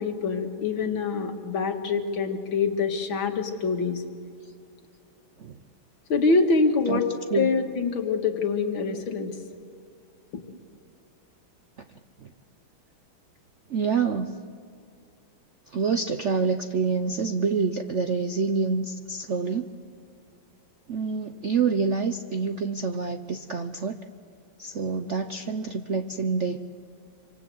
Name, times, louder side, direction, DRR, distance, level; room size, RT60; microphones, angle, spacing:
voice 1, 0.0-4.0 6.1-7.1 7.3-9.3 10.3-10.4, left 4 dB, 75° left, 4 dB, 2.6 m, -25 dB
voice 2, 13.7-14.4 15.7-19.7 20.9-24.0 24.6-26.6, right 5 dB, 60° right, 8 dB, 0.7 m, -27 dB
26.5 x 25.5 x 7.9 m, 2.3 s
omnidirectional pair, 2.2 m